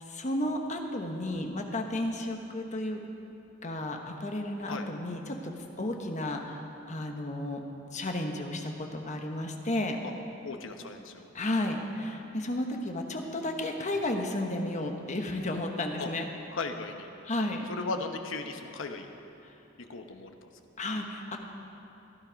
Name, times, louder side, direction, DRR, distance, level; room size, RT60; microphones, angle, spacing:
voice 1, 0.1-3.0 3.6-5.5 5.8-6.6 6.9-7.6 7.9-10.0 11.3-16.2 17.3-17.7 20.8-21.4, left 1 dB, 40° left, 3 dB, 1.2 m, -32 dB
voice 2, 10.4-11.3 16.0-16.1 16.5-17.1 17.7-19.1 19.8-20.5, left 3 dB, 75° left, 5 dB, 1.0 m, -37 dB
16.0 x 11.5 x 5.2 m, 2.9 s
head